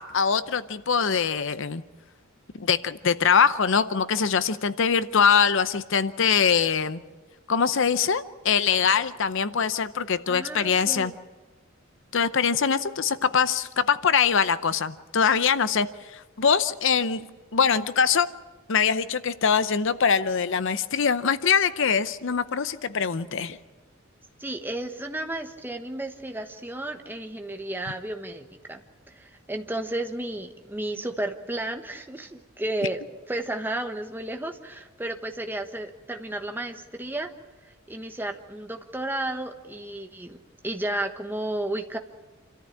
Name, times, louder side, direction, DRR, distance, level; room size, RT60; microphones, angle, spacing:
voice 1, 0.0-1.8 2.6-7.0 7.5-11.1 12.1-15.9 16.1-17.3 17.5-18.3 18.7-23.6, left 6 dB, 65° left, 14 dB, 0.7 m, -23 dB
voice 2, 10.3-11.1 24.4-28.8 29.1-37.3 37.9-40.4 40.6-42.0, right 1 dB, 10° right, 5 dB, 1.2 m, -33 dB
27.5 x 14.0 x 8.6 m, 1.2 s
head